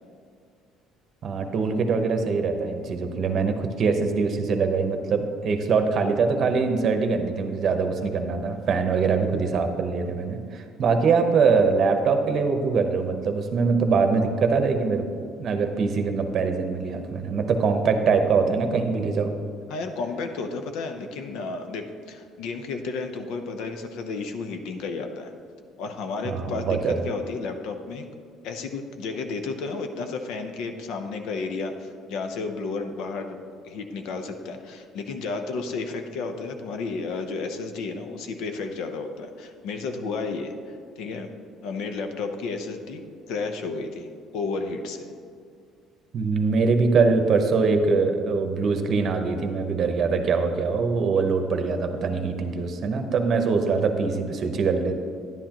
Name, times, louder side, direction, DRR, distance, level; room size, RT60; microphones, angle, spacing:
voice 1, 1.2-15.1 15.4-19.3 26.2-27.0 46.1-54.9, right 4 dB, 45° right, 6 dB, 0.9 m, -23 dB
voice 2, 19.7-25.3 25.8-28.0 28.4-41.3 41.6-43.0 43.3-44.1 44.3-45.1, left 4 dB, 75° left, 6 dB, 0.8 m, -32 dB
10.5 x 10.0 x 3.0 m, 2.2 s
cardioid pair, 135°, 0 cm